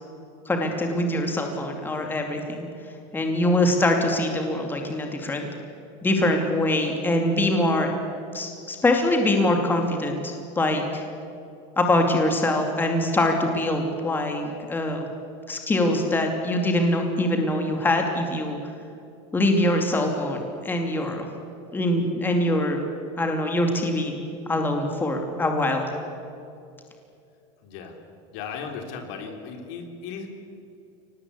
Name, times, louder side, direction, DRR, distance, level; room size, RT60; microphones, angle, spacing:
voice 1, 0.5-2.7 3.1-5.5 6.0-7.9 8.3-11.0 11.8-15.0 15.5-18.6 19.3-21.3 21.7-22.8 23.2-24.1 24.5-25.8, left 1 dB, 15° left, 3 dB, 2.6 m, -23 dB
voice 2, 27.6-28.0 28.3-30.3, left 6 dB, 65° left, 4 dB, 3.9 m, -36 dB
24.0 x 19.0 x 8.4 m, 2.6 s
supercardioid pair, 140°, 15 cm